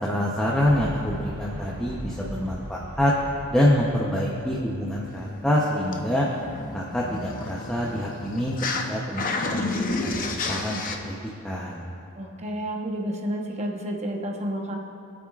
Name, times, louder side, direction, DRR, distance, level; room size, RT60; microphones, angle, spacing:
voice 1, 0.0-3.1 3.5-6.3 6.7-8.5 8.9-10.2 10.4-11.2 11.4-11.9, left 1 dB, 5° left, -5 dB, 0.8 m, -26 dB
sound 1, 0.6-5.3, equal, 15° right, 1.5 m, -40 dB
sound 2, 5.1-8.9 9.1-11.0, left 3 dB, 40° left, 0.7 m, -31 dB
voice 2, 12.2-14.8, equal, 30° right, 0 dB, 1.0 m, -30 dB
23.5 x 8.6 x 2.4 m, 2.7 s
head